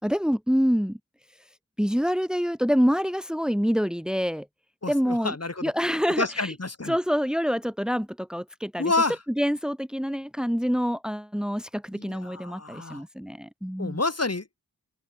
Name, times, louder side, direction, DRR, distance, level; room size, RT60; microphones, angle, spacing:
voice 1, 0.0-1.0 1.8-4.5 4.9-5.4 5.6-6.5 6.9-8.9 9.4-14.0, equal, ahead, 2.5 m, -26 dB
voice 2, 4.8-5.7 6.2-7.0 8.8-9.2 11.9-13.0 13.8-14.6, left 3 dB, 45° left, 5.1 m, -29 dB
open air
wide cardioid pair, 75°, 34 cm